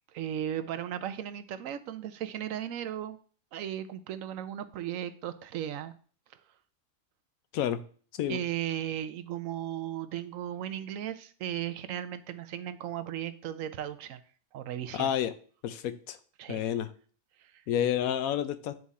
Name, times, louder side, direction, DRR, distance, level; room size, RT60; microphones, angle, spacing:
voice 1, 0.1-3.2 3.5-5.9 8.3-14.2 14.5-15.1 16.4-16.6 17.4-17.6, right 11 dB, 75° right, 11 dB, 1.0 m, -36 dB
voice 2, 14.9-15.3 15.6-16.2 16.5-16.9 17.7-18.7, left 10 dB, 90° left, 11 dB, 1.1 m, -29 dB
9.3 x 3.7 x 4.1 m, 0.43 s
omnidirectional pair, 1.4 m